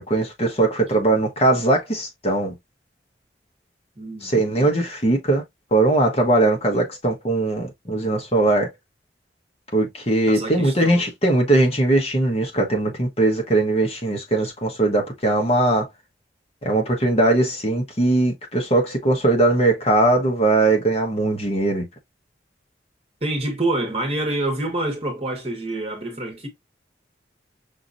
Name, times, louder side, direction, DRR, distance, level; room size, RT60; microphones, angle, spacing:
voice 1, 0.0-2.5 4.2-5.4 5.7-8.7 9.7-15.9 16.6-21.8, right 2 dB, 35° left, 1.2 m, -20 dB
voice 2, 4.0-4.3 6.7-6.8 10.3-11.0 23.2-26.5, right 2 dB, 35° right, 1.4 m, -27 dB
5.8 x 2.9 x 2.5 m
head